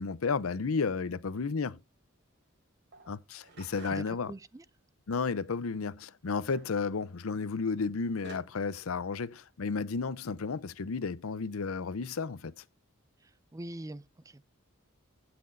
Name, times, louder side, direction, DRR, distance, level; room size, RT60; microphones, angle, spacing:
voice 1, 0.0-1.8 3.1-4.3 5.1-12.6, left 4 dB, 80° left, 0.6 m, -33 dB
sound 1, 2.9-4.3 6.5-6.8 7.8-7.9 8.2-8.4, right 4 dB, 55° right, 2.9 m, -51 dB
voice 2, 3.9-4.7 13.2-14.4, right 1 dB, 15° right, 0.4 m, -44 dB
16.0 x 6.0 x 2.6 m
head